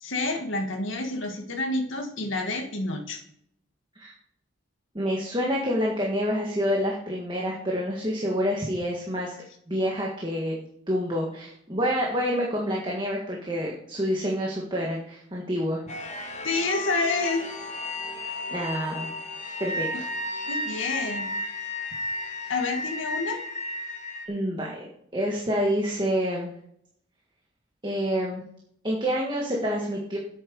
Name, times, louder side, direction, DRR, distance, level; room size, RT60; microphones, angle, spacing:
voice 1, 0.0-3.2 16.4-17.4 19.9-20.0 20.5-21.3 22.5-23.4, left 3 dB, 70° left, 3 dB, 1.6 m, -28 dB
voice 2, 4.9-9.3 9.7-15.8 18.5-19.1 19.6-19.9 22.4-22.5 24.3-24.8 25.1-26.5 27.8-28.4 28.8-30.2, equal, 25° right, -2 dB, 1.6 m, -27 dB
sound 1, 15.9-24.3, left 2 dB, 35° left, 1.1 m, -33 dB
8.6 x 8.2 x 5.4 m, 0.70 s
head